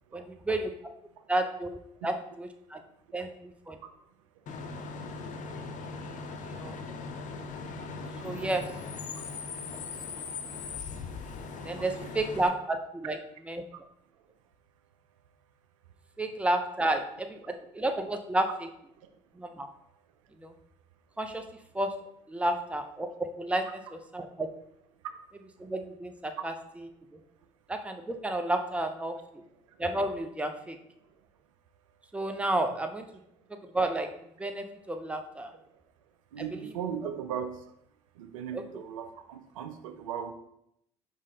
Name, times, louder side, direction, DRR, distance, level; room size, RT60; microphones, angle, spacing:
voice 1, 0.1-0.7 1.3-1.7 2.0-2.8 3.1-3.8 6.4-6.8 8.2-8.6 11.6-13.2 13.5-13.6 16.2-18.7 19.3-19.7 20.4-20.5 21.2-21.4 21.7-21.9 22.3-23.1 23.4-24.5 25.6-27.2 27.7-29.4 29.8-30.8 32.1-33.0 33.5-34.1 34.4-35.5 36.4-36.7 38.5-38.6, right 1 dB, 5° right, 5 dB, 0.6 m, -31 dB
Bus / Idling / Screech, 4.5-12.5, left 4 dB, 50° left, 0.6 m, -39 dB
voice 2, 11.8-12.1 36.3-37.5 38.2-40.3, right 8 dB, 85° right, 8 dB, 0.4 m, -37 dB
4.8 x 3.6 x 2.8 m, 0.76 s
hypercardioid pair, 60°, 17 cm